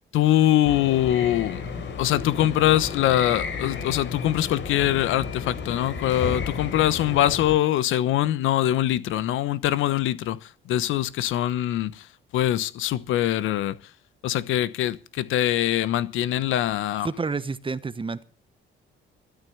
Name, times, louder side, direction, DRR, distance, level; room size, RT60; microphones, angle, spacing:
voice 1, 0.1-1.6 2.0-10.4 10.7-12.0 12.3-13.8 14.2-17.1, left 13 dB, 90° left, 1.1 m, -23 dB
sound 1, 0.7-7.5, left 5 dB, 65° left, 4.8 m, -33 dB
voice 2, 17.0-18.2, right 4 dB, 25° right, 1.2 m, -29 dB
13.0 x 13.0 x 7.1 m
cardioid pair, 90°, 20 cm